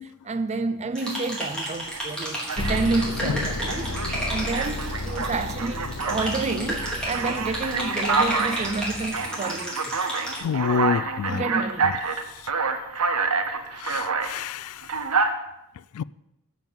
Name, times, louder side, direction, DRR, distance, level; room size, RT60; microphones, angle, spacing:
voice 1, 0.0-4.0 4.3-10.0 11.3-11.9, right 3 dB, 30° right, 0.5 m, -29 dB
sound 1, 1.0-10.4, equal, 5° left, 3.2 m, -32 dB
Alarm, 1.8-2.0 2.5-3.2 3.7-6.3 6.7-14.3 14.8-15.3, right 4 dB, 75° right, 0.9 m, -27 dB
sound 2, 2.6-9.3, left 2 dB, 85° left, 0.8 m, -34 dB
voice 2, 10.4-11.4 13.8-14.7 16.0-16.1, left 6 dB, 70° left, 0.3 m, -27 dB
7.9 x 7.1 x 7.3 m
head